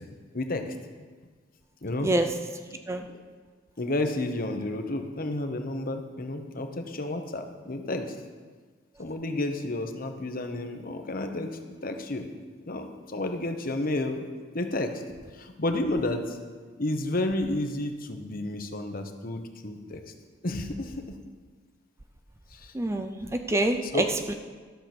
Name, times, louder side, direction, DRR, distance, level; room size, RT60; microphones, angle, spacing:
voice 1, 3.8-8.1 9.0-12.3 12.7-14.3 14.5-14.9 15.3-16.4 16.8-20.0 20.4-21.2 22.5-22.7 23.2-23.3 23.9-24.1, left 2 dB, 45° left, 6 dB, 1.0 m, -31 dB
voice 2, 22.7-24.3, right 1 dB, 15° right, 6 dB, 0.4 m, -26 dB
12.5 x 7.0 x 6.0 m, 1.5 s
head